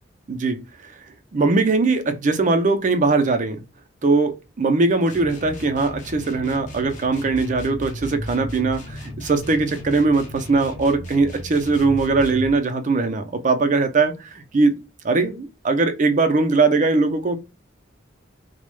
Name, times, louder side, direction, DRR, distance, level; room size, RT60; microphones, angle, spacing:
voice 1, 0.3-0.6 1.3-3.6 4.0-17.4, right 3 dB, 40° right, 0.5 m, -20 dB
sound 1, 5.1-12.6, equal, 40° left, 0.7 m, -35 dB
2.2 x 2.1 x 3.1 m
head